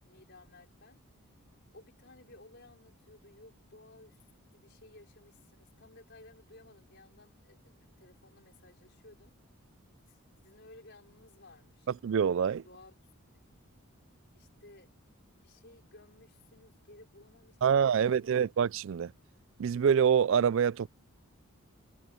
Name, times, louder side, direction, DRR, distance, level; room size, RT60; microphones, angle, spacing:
voice 1, 0.0-1.0 1.7-4.2 4.5-9.3 10.1-11.9 12.6-13.6 14.3-14.9 15.4-18.3, left 2 dB, 50° left, 5.0 m, -57 dB
voice 2, 12.0-12.6 17.6-19.1 19.6-20.9, right 7 dB, 60° right, 0.3 m, -26 dB
head